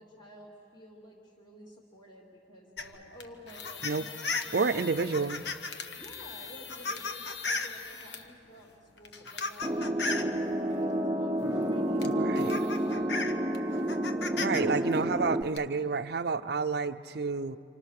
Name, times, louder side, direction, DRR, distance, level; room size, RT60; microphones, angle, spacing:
voice 1, 0.0-4.2 4.4-4.7 5.9-13.3, equal, 25° left, -2 dB, 3.0 m, -52 dB
sound 1, 2.8-8.3 9.0-10.3 11.5-11.6 12.0-14.6 14.9-15.6, left 4 dB, 65° left, 1.5 m, -36 dB
voice 2, 4.5-5.4 12.0-12.6 14.3-17.6, right 4 dB, 60° right, 8 dB, 0.6 m, -30 dB
sound 2, 9.6-15.4, right 1 dB, 15° right, 0.9 m, -29 dB
28.5 x 27.5 x 6.6 m, 2.7 s
head